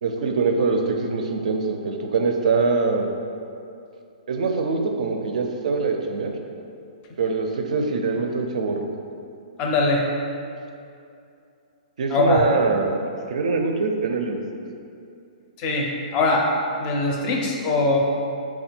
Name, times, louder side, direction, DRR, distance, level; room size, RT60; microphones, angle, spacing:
voice 1, 0.0-3.1 4.3-6.3 7.2-8.9 12.0-14.4, right 4 dB, 65° right, 3 dB, 0.4 m, -23 dB
voice 2, 9.6-10.1 12.1-12.5 15.6-16.5 16.8-18.0, left 2 dB, 25° left, 0 dB, 0.4 m, -21 dB
3.4 x 2.2 x 4.3 m, 2.5 s
hypercardioid pair, 165°, 4 cm